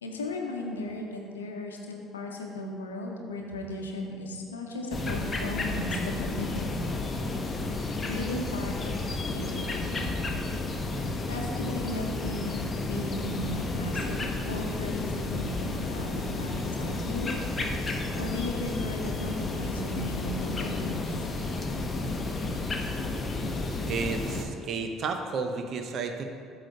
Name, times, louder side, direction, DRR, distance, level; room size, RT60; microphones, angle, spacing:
voice 1, 0.0-6.8 8.0-9.0 9.3-9.9 11.3-17.3 18.2-21.1, left 1 dB, 80° left, 1 dB, 0.8 m, -36 dB
sound 1, 4.9-24.4, left 2 dB, 25° left, 0.9 m, -32 dB
voice 2, 23.9-26.2, right 4 dB, 45° right, 6 dB, 0.7 m, -32 dB
8.9 x 3.3 x 6.7 m, 2.3 s
figure-of-eight pair, 55°, 0 cm